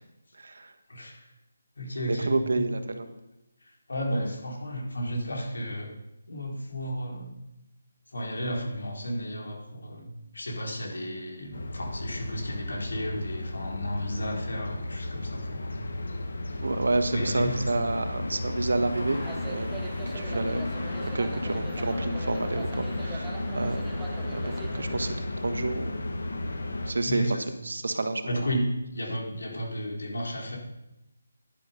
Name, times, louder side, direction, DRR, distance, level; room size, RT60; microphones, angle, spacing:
voice 1, 0.4-0.7 2.2-3.1 16.6-19.7 20.1-20.7 21.1-23.9 24.3-26.0 26.9-27.2 27.6-28.4, right 2 dB, 70° right, 8 dB, 1.4 m, -29 dB
voice 2, 0.9-1.3 1.8-2.6 3.6-5.9 6.3-7.3 8.1-15.9 17.1-17.5 27.0-27.4 28.2-30.6, equal, 85° left, -1 dB, 4.2 m, -33 dB
sound 1, 11.5-26.9, left 2 dB, 65° left, 1.9 m, -33 dB
sound 2, 19.1-25.2, right 2 dB, 5° right, 0.8 m, -42 dB
11.0 x 10.0 x 5.4 m, 0.92 s
hypercardioid pair, 180°, 0 cm